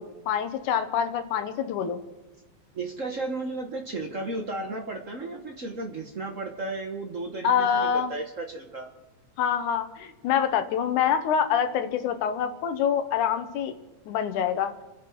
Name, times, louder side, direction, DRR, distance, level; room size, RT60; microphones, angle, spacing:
voice 1, 0.0-2.0 7.4-8.1 9.4-13.7 14.1-14.7, left 8 dB, 85° left, 8 dB, 2.6 m, -26 dB
voice 2, 2.7-8.9, right 2 dB, 70° right, 3 dB, 0.7 m, -34 dB
28.0 x 10.0 x 4.6 m, 1.1 s
omnidirectional pair, 3.5 m